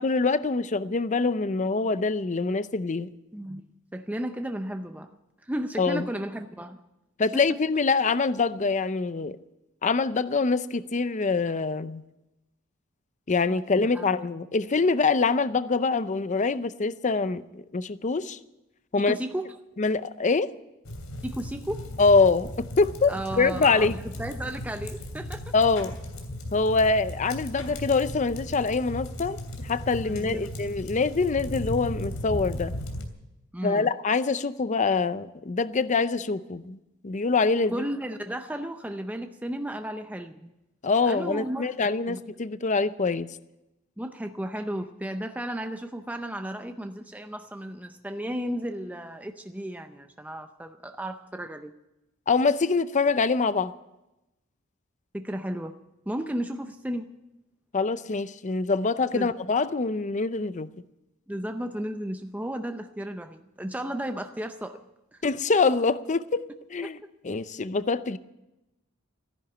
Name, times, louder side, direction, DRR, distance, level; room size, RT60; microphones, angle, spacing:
voice 1, 0.0-3.1 5.8-6.1 7.2-9.4 9.8-12.0 13.3-18.4 18.9-19.2 19.8-20.5 22.0-24.0 25.5-26.0 26.5-29.4 29.6-32.7 33.6-36.8 37.0-37.8 40.8-43.3 52.3-53.7 57.7-60.7 65.2-67.0 67.2-68.2, left 4 dB, 35° left, 0.6 m, -25 dB
voice 2, 3.3-3.6 3.9-5.2 5.4-6.8 7.3-7.6 13.5-14.0 19.0-19.5 21.2-21.9 23.1-23.9 24.2-25.5 30.0-30.5 33.5-33.9 37.7-40.5 41.1-41.7 42.1-42.2 44.0-51.7 55.1-55.8 56.1-57.1 59.1-59.3 61.3-64.8, right 1 dB, 5° right, 0.6 m, -34 dB
sound 1, 20.8-33.1, left 1 dB, 85° left, 2.9 m, -36 dB
14.5 x 11.0 x 8.8 m
head